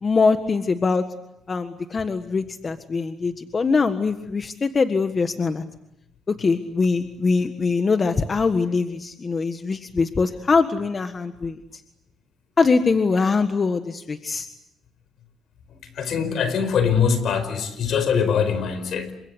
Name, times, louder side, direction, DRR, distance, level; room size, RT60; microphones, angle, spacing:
voice 1, 0.0-1.0 1.5-5.6 6.3-11.8 12.6-14.5, left 4 dB, 35° left, 8 dB, 1.6 m, -22 dB
voice 2, 15.7-19.1, left 6 dB, 70° left, 12 dB, 4.9 m, -23 dB
28.5 x 25.0 x 8.2 m, 0.83 s
cardioid pair, 90°, 0 cm